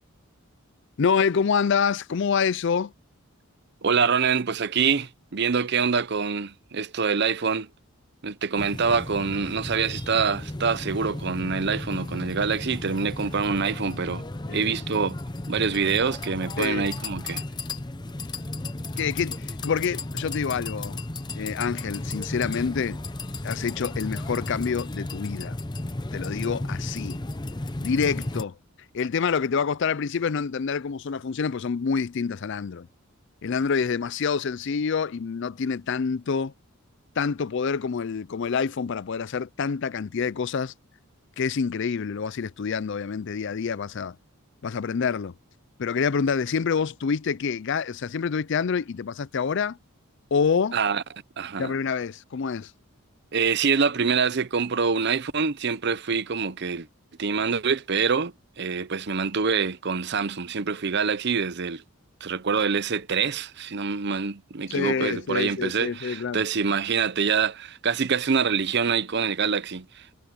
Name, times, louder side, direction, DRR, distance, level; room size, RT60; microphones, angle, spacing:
voice 1, 1.0-2.9 14.5-14.7 16.6-16.9 19.0-21.0 21.3-23.0 23.4-25.6 26.1-27.2 27.8-28.6 28.9-32.9 33.4-36.5 37.2-40.7 41.4-44.2 44.6-45.3 45.8-49.8 50.3-50.8 51.6-52.7 64.7-66.4, left 6 dB, 55° left, 0.4 m, -27 dB
voice 2, 3.8-7.7 8.2-14.3 14.5-15.2 15.5-17.4 50.7-51.0 51.4-51.7 53.3-56.9 57.2-61.8 62.2-70.2, right 5 dB, 50° right, 0.7 m, -25 dB
sound 1, 8.6-28.4, left 2 dB, 20° left, 0.7 m, -34 dB
head